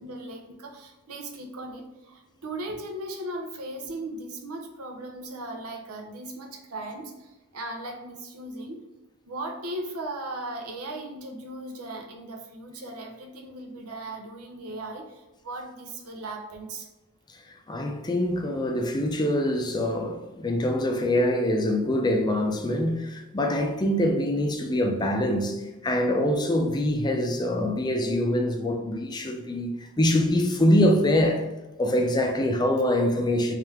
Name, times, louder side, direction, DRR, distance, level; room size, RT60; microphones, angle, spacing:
voice 1, 0.0-8.9 9.2-16.9, right 1 dB, 85° right, 0.7 m, -37 dB
voice 2, 17.7-31.5 31.8-33.5, left 1 dB, 20° left, 0.5 m, -24 dB
3.4 x 3.3 x 3.3 m
head